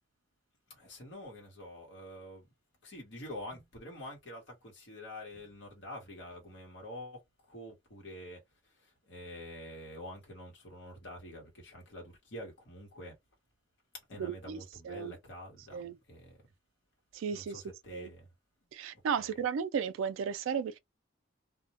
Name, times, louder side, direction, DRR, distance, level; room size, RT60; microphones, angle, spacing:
voice 1, 0.7-2.5 2.8-7.2 7.5-13.2 14.1-16.4 17.3-18.3 19.2-19.4, left 1 dB, 65° left, 1.0 m, -47 dB
voice 2, 14.2-14.6 14.8-15.2 15.7-16.0 17.1-17.6 17.9-18.1 18.7-20.8, right 7 dB, 80° right, 0.3 m, -34 dB
2.2 x 2.1 x 2.8 m
head